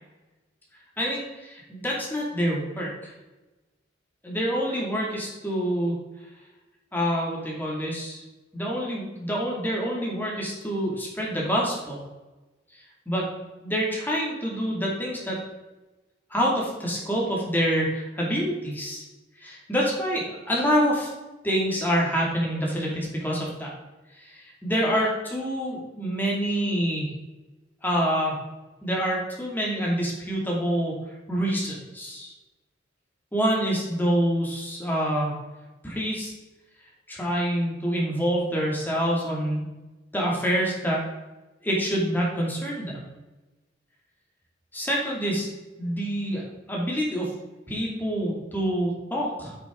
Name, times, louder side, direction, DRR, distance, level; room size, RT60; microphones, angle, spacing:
voice 1, 1.0-3.1 4.2-6.0 6.9-8.2 8.5-12.0 13.1-13.3 13.6-15.4 16.3-19.1 19.4-21.1 21.4-23.7 24.2-27.1 27.8-28.4 28.8-31.0 31.3-32.3 33.3-35.4 35.8-36.3 37.1-39.7 40.1-41.0 41.6-42.9 44.7-45.5 45.8-47.3 47.7-49.6, equal, 10° left, -4 dB, 2.5 m, -26 dB
8.3 x 7.0 x 3.9 m, 1.1 s
head